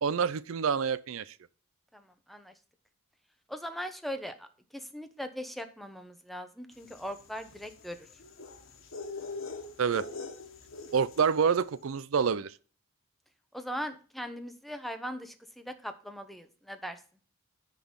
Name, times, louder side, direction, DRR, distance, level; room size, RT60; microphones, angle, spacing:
voice 1, 0.0-1.3 9.8-10.1 10.9-12.5, right 6 dB, 70° right, 0.4 m, -27 dB
voice 2, 1.9-2.5 3.5-4.5 4.7-8.1 13.5-17.0, equal, ahead, 0.9 m, -40 dB
sound 1, 6.9-11.4, left 3 dB, 70° left, 1.5 m, -42 dB
10.0 x 4.0 x 7.1 m
head